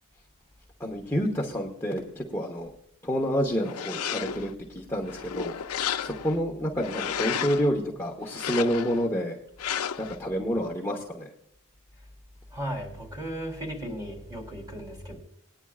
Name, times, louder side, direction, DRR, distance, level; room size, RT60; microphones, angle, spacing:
voice 1, 0.8-2.7 3.0-5.5 6.0-9.4 10.0-11.3, equal, 10° left, -2 dB, 1.1 m, -29 dB
sound 1, 3.6-4.5 5.0-6.4 6.8-7.7 8.3-9.1 9.6-10.2, left 8 dB, 90° left, 0.5 m, -32 dB
voice 2, 12.5-15.2, equal, 15° right, 1 dB, 3.4 m, -36 dB
20.0 x 9.9 x 2.4 m, 0.73 s
head